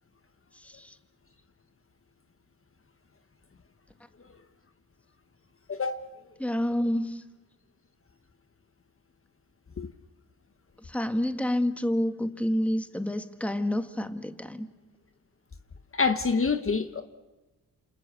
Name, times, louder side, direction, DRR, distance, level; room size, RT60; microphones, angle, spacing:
voice 1, 0.5-1.0 6.4-7.2 10.8-14.7, left 1 dB, 5° left, 1.8 m, -29 dB
voice 2, 5.7-6.0 9.8-9.9 16.0-17.0, left 4 dB, 35° left, 1.4 m, -26 dB
28.5 x 27.5 x 7.0 m
cardioid pair, 65°, 37 cm